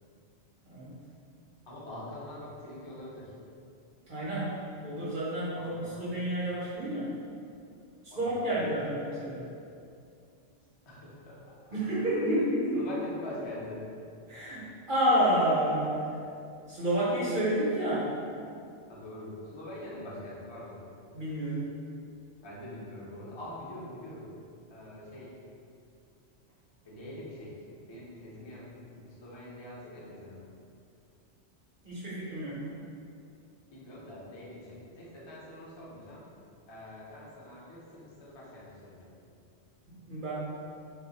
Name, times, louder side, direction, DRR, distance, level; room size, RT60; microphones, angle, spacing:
voice 1, 1.7-3.3 5.5-6.1 8.1-8.8 10.9-11.8 12.3-12.5 12.7-13.9 18.9-20.8 22.4-24.3 24.7-25.4 26.8-30.4 33.7-36.3 36.7-39.2, left 1 dB, 35° left, -7 dB, 0.4 m, -44 dB
voice 2, 4.1-7.1 8.2-9.4 11.7-12.8 14.3-14.6 14.9-16.1 16.7-18.1 21.1-21.7 31.8-32.6 39.9-40.3, right 1 dB, 55° right, -8 dB, 0.6 m, -29 dB
2.2 x 2.0 x 3.8 m, 2.4 s
omnidirectional pair, 1.2 m